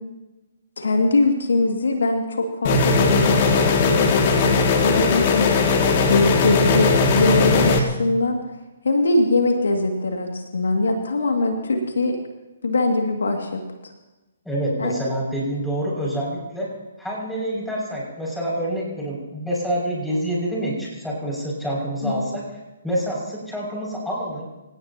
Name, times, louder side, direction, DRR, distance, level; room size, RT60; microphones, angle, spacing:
voice 1, 0.8-5.5 6.1-8.4 8.8-12.2 12.6-13.9 14.8-15.0 22.0-22.3, left 2 dB, 70° left, 3 dB, 2.3 m, -22 dB
sound 1, 2.6-7.8, left 4 dB, 40° left, 2.4 m, -18 dB
voice 2, 14.4-16.7 17.0-22.4 22.8-24.5, right 1 dB, ahead, -5 dB, 6.5 m, -27 dB
27.5 x 17.0 x 3.0 m, 1.1 s
figure-of-eight pair, 130°, 0 cm